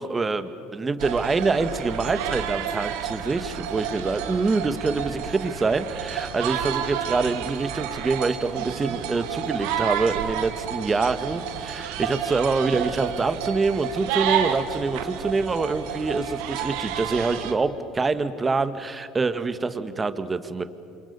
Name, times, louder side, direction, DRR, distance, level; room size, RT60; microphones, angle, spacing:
voice 1, 0.0-20.6, right 4 dB, 25° right, 11 dB, 1.7 m, -25 dB
sound 1, 1.0-17.5, right 9 dB, 80° right, 2.0 m, -30 dB
28.5 x 26.5 x 7.1 m, 2.6 s
supercardioid pair, 90°, 0 cm